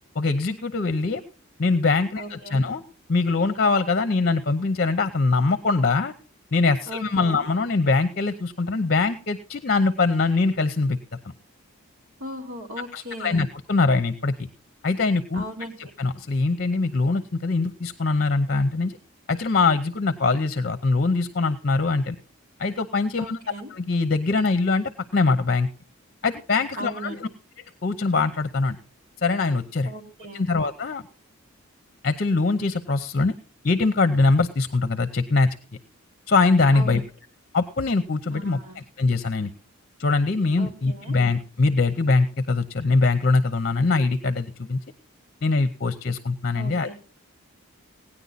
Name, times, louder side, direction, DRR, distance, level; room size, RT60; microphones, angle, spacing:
voice 1, 0.1-1.2 1.6-2.8 3.1-6.1 6.5-11.0 12.9-14.3 14.8-15.4 16.0-19.0 19.3-22.2 22.6-23.4 23.7-25.7 26.2-27.2 27.8-28.8 29.2-29.9 30.3-31.0 32.0-33.3 33.6-35.5 36.3-37.0 37.5-38.6 39.0-39.5 40.0-44.8 45.4-46.9, left 3 dB, 45° left, 10 dB, 0.7 m, -22 dB
voice 2, 2.2-2.7 6.9-7.5 12.2-13.5 15.3-15.8 23.2-23.7 26.8-27.3 29.8-30.4 36.7-37.0 38.3-38.8 40.6-41.1 46.5-46.9, right 1 dB, 75° right, 1 dB, 2.7 m, -37 dB
17.5 x 9.9 x 4.0 m, 0.39 s
head